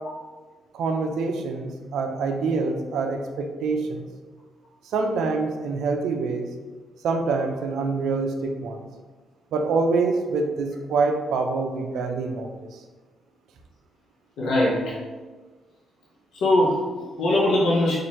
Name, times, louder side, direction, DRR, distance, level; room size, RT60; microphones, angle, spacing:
voice 1, 0.7-4.1 4.9-6.5 7.0-8.8 9.5-12.7, right 4 dB, 75° right, 4 dB, 0.4 m, -25 dB
voice 2, 14.4-15.0 16.3-18.0, left 1 dB, 80° left, -5 dB, 0.7 m, -21 dB
4.1 x 2.5 x 3.0 m, 1.3 s
supercardioid pair, 70°, 0 cm